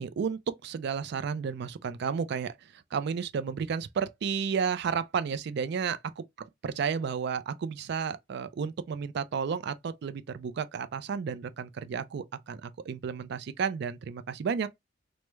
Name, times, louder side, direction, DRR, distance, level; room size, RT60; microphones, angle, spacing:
voice 1, 0.0-2.5 2.9-6.2 6.6-14.7, right 6 dB, 60° right, 0.3 m, -32 dB
3.1 x 2.1 x 3.2 m
head